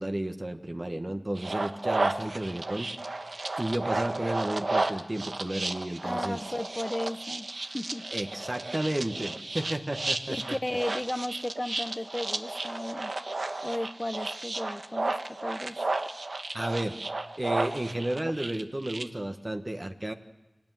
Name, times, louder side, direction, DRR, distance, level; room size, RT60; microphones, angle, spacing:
voice 1, 0.0-2.9 3.6-6.4 8.1-10.6 16.5-17.0 17.4-20.1, right 1 dB, 35° right, 5 dB, 1.4 m, -32 dB
sound 1, 1.4-19.0, right 2 dB, 80° right, 1.3 m, -33 dB
voice 2, 6.0-7.5 7.7-8.1 10.3-13.1 13.6-15.8, left 1 dB, 25° left, 12 dB, 0.9 m, -34 dB
25.0 x 19.0 x 9.3 m, 1.1 s
wide cardioid pair, 55°, 0 cm